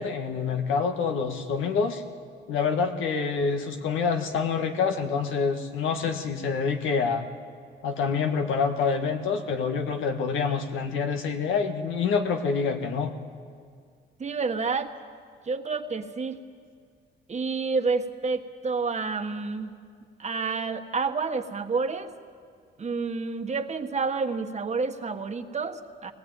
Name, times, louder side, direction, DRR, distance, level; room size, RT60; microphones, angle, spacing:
voice 1, 0.0-2.0 2.5-7.3 7.8-13.1, left 5 dB, 80° left, 5 dB, 1.8 m, -27 dB
voice 2, 14.2-14.9 15.4-16.4 17.3-19.7 20.2-22.1 22.8-26.1, right 4 dB, 35° right, 6 dB, 1.5 m, -29 dB
22.0 x 19.0 x 9.1 m, 2.1 s
cardioid pair, 90°, 20 cm